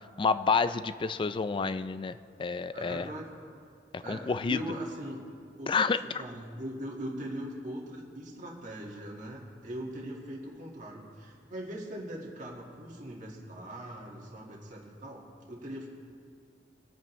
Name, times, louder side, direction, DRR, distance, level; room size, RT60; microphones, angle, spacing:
voice 1, 0.2-3.1 3.9-4.6 5.7-6.0, left 5 dB, 30° left, 13 dB, 0.3 m, -29 dB
voice 2, 2.7-3.2 4.0-5.3 5.6-15.2 15.5-15.9, right 1 dB, 45° right, -3 dB, 1.8 m, -40 dB
24.5 x 8.7 x 3.1 m, 2.3 s
head